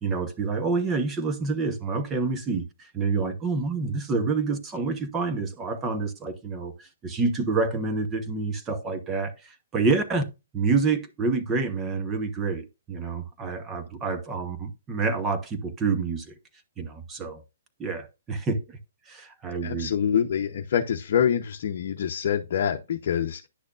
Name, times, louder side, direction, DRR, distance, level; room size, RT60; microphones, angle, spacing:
voice 1, 0.0-10.2 10.5-16.4 16.8-17.4 17.8-18.8 19.1-19.9, right 4 dB, 15° right, 1.0 m, -28 dB
voice 2, 19.6-23.5, left 8 dB, 55° left, 0.8 m, -26 dB
10.0 x 6.4 x 2.5 m
hypercardioid pair, 155°, 0 cm